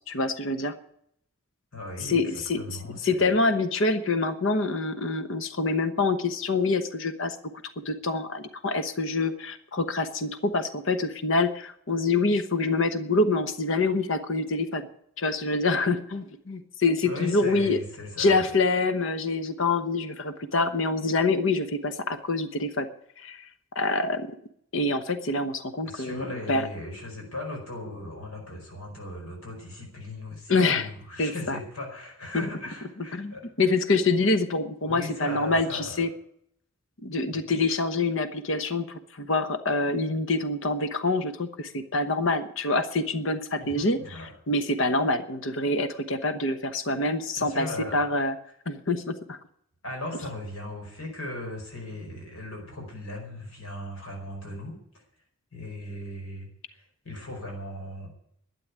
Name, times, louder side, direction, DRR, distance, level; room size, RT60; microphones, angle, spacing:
voice 1, 0.1-0.7 2.0-2.8 3.0-7.4 7.8-14.9 15.2-17.8 18.2-22.9 23.2-23.5 23.7-24.3 24.7-26.7 30.5-30.9 31.2-31.6 33.1-36.1 37.0-47.7 47.9-48.3 48.7-49.4, left 3 dB, 60° left, 10 dB, 1.0 m, -26 dB
voice 2, 1.7-3.3 17.0-18.5 25.8-34.0 34.8-36.0 37.5-37.6 43.6-44.3 47.4-48.0 49.8-55.0 55.5-58.1, left 1 dB, 90° left, 1 dB, 4.8 m, -38 dB
12.5 x 8.8 x 9.6 m, 0.70 s
head